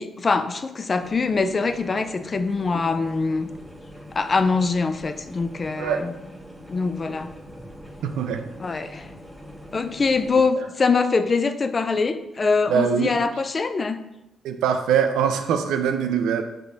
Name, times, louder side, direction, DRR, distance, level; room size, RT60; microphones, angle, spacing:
voice 1, 0.0-3.5 4.1-6.1 6.7-7.3 8.6-9.1 9.7-14.0, left 4 dB, 45° left, 11 dB, 0.3 m, -23 dB
sound 1, 1.0-10.5, equal, 5° right, 0.7 m, -43 dB
voice 2, 8.0-8.4 10.6-10.7 12.7-13.2 14.4-16.4, right 7 dB, 80° right, 7 dB, 0.3 m, -23 dB
4.5 x 3.3 x 2.7 m, 0.90 s
supercardioid pair, 50°, 0 cm